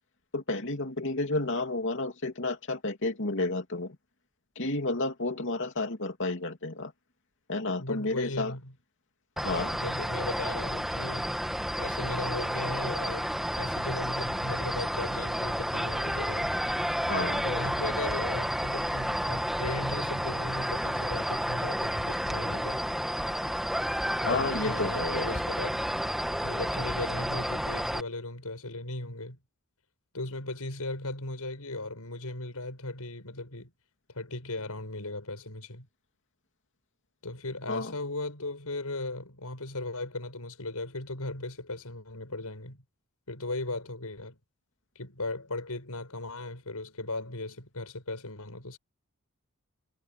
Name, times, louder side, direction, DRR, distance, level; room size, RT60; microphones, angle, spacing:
voice 1, 0.3-4.0 4.6-6.9 7.5-8.5 9.4-9.8 17.1-17.4 24.3-25.4 37.7-37.9, left 2 dB, 55° left, 2.8 m, -31 dB
voice 2, 7.8-8.7 9.7-11.4 11.8-13.3 13.6-16.7 17.4-22.8 24.2-25.9 26.4-29.4 30.1-33.7 34.1-35.9 37.2-42.8 43.3-44.4 45.0-48.8, left 2 dB, 85° left, 5.6 m, -37 dB
sound 1, 9.4-28.0, equal, ahead, 1.9 m, -31 dB
head